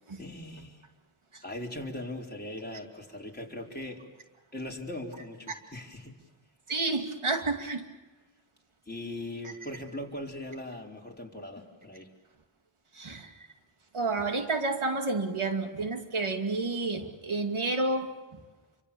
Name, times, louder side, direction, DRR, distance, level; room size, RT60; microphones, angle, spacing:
voice 1, 0.1-0.9 1.4-4.1 4.5-6.2 8.9-12.1, left 1 dB, 20° left, -1 dB, 4.4 m, -40 dB
voice 2, 6.7-7.8 12.9-13.3 13.9-18.4, right 3 dB, 85° right, 4 dB, 2.5 m, -30 dB
28.0 x 24.5 x 7.1 m, 1.2 s
wide cardioid pair, 55°, 48 cm